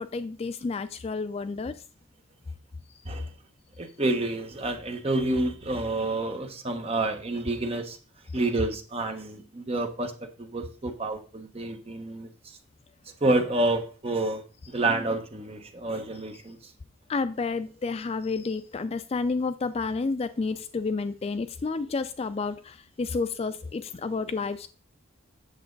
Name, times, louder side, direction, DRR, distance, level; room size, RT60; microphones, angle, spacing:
voice 1, 0.0-1.7 17.1-24.7, left 4 dB, 30° left, 0.3 m, -30 dB
voice 2, 3.8-8.0 8.3-10.1 10.4-12.3 13.2-14.4 14.7-16.6, right 2 dB, 30° right, 1.1 m, -28 dB
8.1 x 6.6 x 3.9 m
head